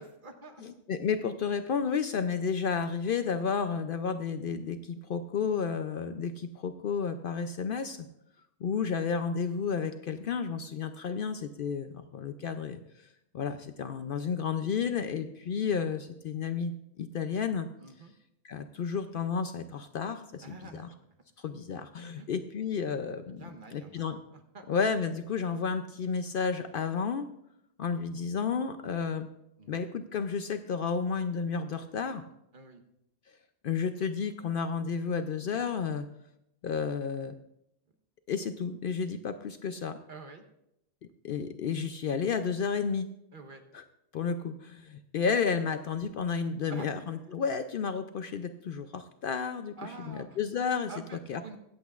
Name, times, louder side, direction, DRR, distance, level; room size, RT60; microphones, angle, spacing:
voice 1, 0.0-0.8 17.8-18.1 20.4-21.0 22.1-22.3 23.3-24.7 29.6-29.8 32.5-32.8 40.1-40.4 43.3-43.6 46.7-47.2 49.8-50.4 50.9-51.6, right 3 dB, 50° right, 5 dB, 1.1 m, -47 dB
voice 2, 0.6-8.0 8.6-13.1 13.3-17.7 18.4-20.9 21.4-24.2 24.7-27.3 27.8-29.3 29.7-32.2 33.6-36.1 36.6-37.3 38.3-40.0 41.2-43.1 43.7-43.8 44.1-49.7 50.1-50.9 51.3-51.6, left 6 dB, 60° left, 9 dB, 0.6 m, -32 dB
22.5 x 8.1 x 2.4 m, 0.82 s
omnidirectional pair, 1.2 m